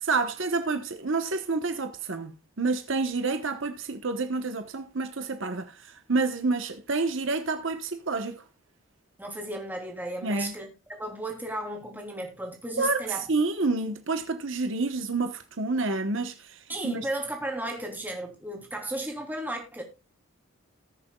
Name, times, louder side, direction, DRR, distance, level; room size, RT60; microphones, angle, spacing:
voice 1, 0.0-8.4 10.2-10.5 12.8-17.1, right 3 dB, 65° right, 1.1 m, -29 dB
voice 2, 9.2-13.2 16.7-19.8, right 1 dB, 10° right, 2.9 m, -34 dB
19.5 x 6.9 x 2.3 m
head